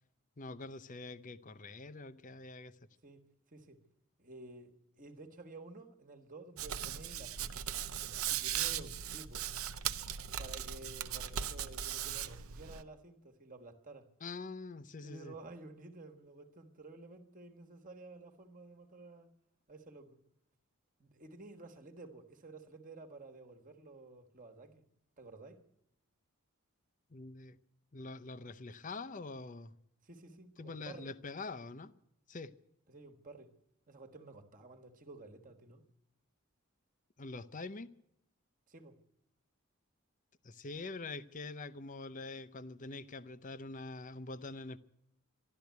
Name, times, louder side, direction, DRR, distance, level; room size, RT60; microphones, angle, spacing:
voice 1, 0.4-2.8 14.2-15.3 27.1-27.6 27.9-29.7 30.6-31.9 32.3-32.5 37.2-37.9 40.4-44.8, left 3 dB, 35° left, 0.6 m, -45 dB
voice 2, 4.2-7.8 8.3-9.5 10.4-14.1 15.0-19.3 19.7-20.2 21.0-24.8 25.2-25.6 30.0-31.1 32.9-33.5 33.9-35.8 38.7-39.0, right 2 dB, 40° right, 1.4 m, -52 dB
Hands, 6.6-12.8, right 10 dB, 80° right, 0.7 m, -38 dB
12.5 x 12.0 x 9.4 m
head